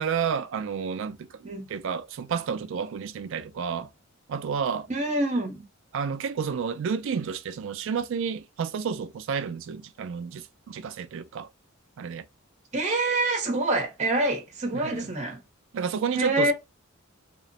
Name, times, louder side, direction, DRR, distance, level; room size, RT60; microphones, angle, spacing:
voice 1, 0.0-3.9 4.3-4.9 5.9-11.5 12.0-12.2 14.7-15.1 15.7-16.5, right 6 dB, 65° right, 0.3 m, -31 dB
voice 2, 4.9-5.6 12.7-15.4 16.2-16.5, right 2 dB, 35° right, 0.7 m, -26 dB
2.9 x 2.0 x 2.6 m
head